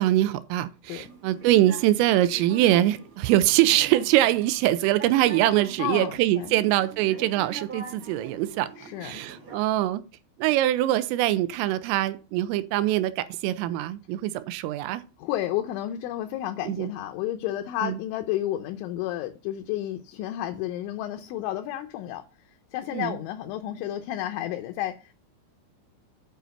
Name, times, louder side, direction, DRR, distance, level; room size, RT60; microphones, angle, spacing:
voice 1, 0.0-8.7 9.0-10.0 10.4-15.0 16.7-16.9 17.8-18.0 22.9-23.2, right 14 dB, 90° right, 3.3 m, -23 dB
sound 1, 0.9-9.6, right 4 dB, 55° right, 1.4 m, -43 dB
voice 2, 5.8-6.6 8.8-9.2 15.2-22.2 22.7-24.9, left 13 dB, 80° left, 3.0 m, -31 dB
9.2 x 5.0 x 6.5 m
omnidirectional pair, 5.8 m